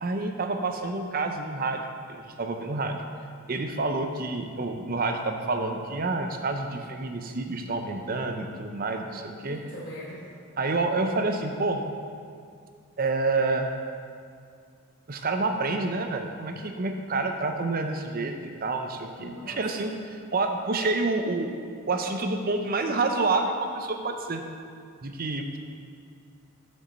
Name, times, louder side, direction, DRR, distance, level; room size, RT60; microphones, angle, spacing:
voice 1, 0.0-3.0 3.5-9.6 10.6-11.8 13.0-13.7 15.1-19.9 20.3-21.5 21.9-24.4 25.0-25.6, right 3 dB, 40° right, 5 dB, 0.6 m, -28 dB
voice 2, 9.4-10.2 19.2-19.6, left 1 dB, 50° left, -7 dB, 1.1 m, -41 dB
7.1 x 5.3 x 6.5 m, 2.3 s
head